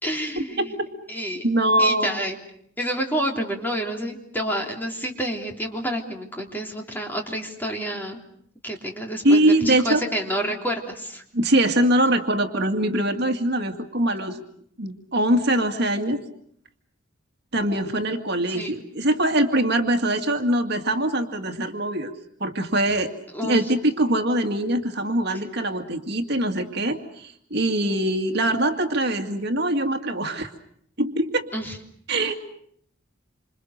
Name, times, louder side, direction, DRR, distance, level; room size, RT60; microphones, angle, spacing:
voice 1, 0.0-0.7 1.1-1.5 1.8-2.4 2.8-8.2 8.6-11.2 18.5-18.7 23.3-23.6 31.5-31.8, right 1 dB, 10° left, 1 dB, 3.5 m, -29 dB
voice 2, 0.6-0.9 1.4-2.3 9.2-10.0 11.3-14.4 14.8-16.2 17.5-22.1 22.4-23.1 23.4-30.5 31.0-31.5 32.1-32.3, right 1 dB, 55° right, 5 dB, 2.2 m, -23 dB
27.5 x 27.0 x 6.7 m, 0.67 s
head